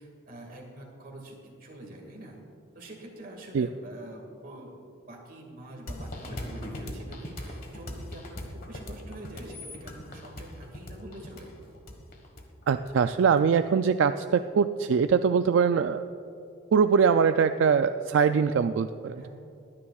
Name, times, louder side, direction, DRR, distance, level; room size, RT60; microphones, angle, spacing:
voice 1, 0.0-2.4 2.7-4.7 5.1-11.5 19.1-19.3, right 1 dB, 45° right, 0 dB, 2.0 m, -45 dB
sound 1, 5.9-13.4, left 1 dB, 45° left, 1.4 m, -40 dB
voice 2, 12.7-16.0 16.7-19.3, right 6 dB, 70° right, 9 dB, 0.3 m, -23 dB
22.5 x 9.7 x 2.4 m, 2.6 s
head